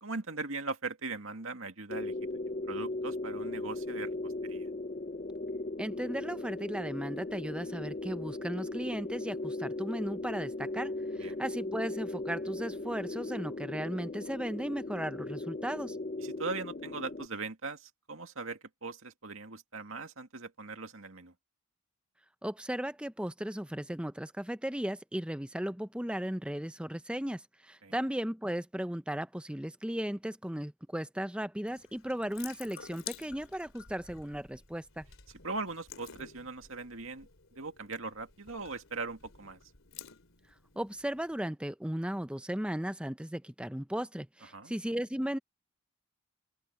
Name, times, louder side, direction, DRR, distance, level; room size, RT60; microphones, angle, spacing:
voice 1, 0.0-2.1 2.7-4.7 11.1-11.4 16.2-21.3 27.8-28.0 35.3-37.3 37.6-39.6 44.5-44.7, right 3 dB, 65° right, 2.3 m, -40 dB
sound 1, 1.9-17.3, left 2 dB, 35° left, 0.6 m, -38 dB
voice 2, 5.8-10.9 11.2-16.0 22.4-35.0 40.8-45.4, equal, 5° right, 0.6 m, -36 dB
Water tap faucet / Sink (filling or washing) / Drip, 31.6-41.4, left 9 dB, 60° left, 3.7 m, -51 dB
open air
head